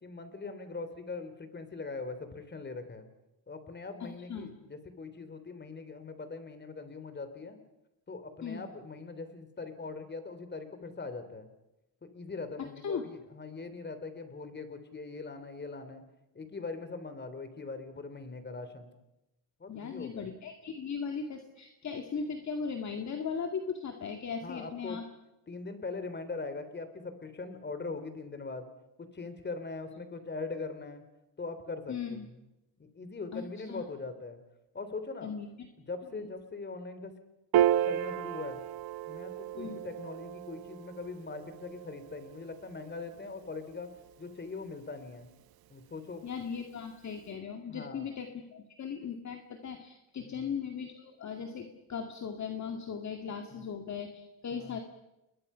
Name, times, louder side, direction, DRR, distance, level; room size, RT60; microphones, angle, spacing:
voice 1, 0.0-3.1 3.5-7.6 8.1-11.5 12.0-16.0 16.3-18.9 19.6-20.3 24.4-25.0 25.5-28.7 29.0-31.0 31.4-32.2 32.9-34.4 34.7-35.3 35.9-37.1 37.8-38.6 39.1-43.9 44.2-45.3 45.7-46.2 47.7-48.1 50.2-50.5 53.5-53.6 54.5-54.8, left 3 dB, 25° left, 9 dB, 3.3 m, -41 dB
voice 2, 4.0-4.5 8.4-8.6 12.6-13.0 19.7-25.1 31.9-32.3 33.3-33.4 33.7-33.8 35.2-35.7 36.1-36.3 39.5-39.8 46.2-54.8, left 6 dB, 40° left, 4 dB, 2.1 m, -38 dB
Piano, 37.5-44.2, right 11 dB, 55° right, 1.0 m, -33 dB
29.0 x 21.5 x 5.7 m, 0.94 s
cardioid pair, 115°, 43 cm